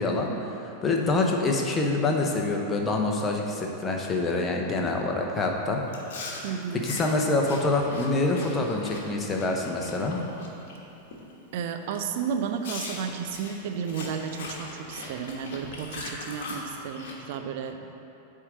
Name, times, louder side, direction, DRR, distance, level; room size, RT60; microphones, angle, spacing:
voice 1, 0.0-5.8 6.7-10.2, left 2 dB, 20° left, 1 dB, 1.0 m, -26 dB
Chewing mastication, 5.9-10.8 11.1-11.4 11.9-12.0 12.6-17.1, left 2 dB, 55° left, 1.3 m, -40 dB
voice 2, 6.4-7.0 11.5-17.9, right 7 dB, 50° right, 6 dB, 0.6 m, -33 dB
9.1 x 3.7 x 6.9 m, 2.8 s
figure-of-eight pair, 90°, 0 cm